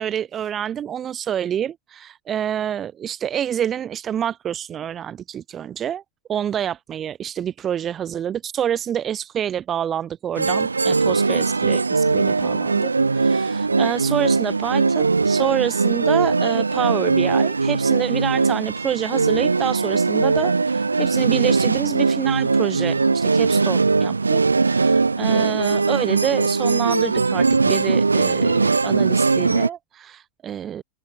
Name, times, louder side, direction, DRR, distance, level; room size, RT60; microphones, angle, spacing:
voice 1, 0.0-6.0 6.3-30.8, right 9 dB, 25° right, 6.2 m, -27 dB
sound 1, 10.4-29.7, right 4 dB, 80° right, 1.3 m, -20 dB
figure-of-eight pair, 90°, 0 cm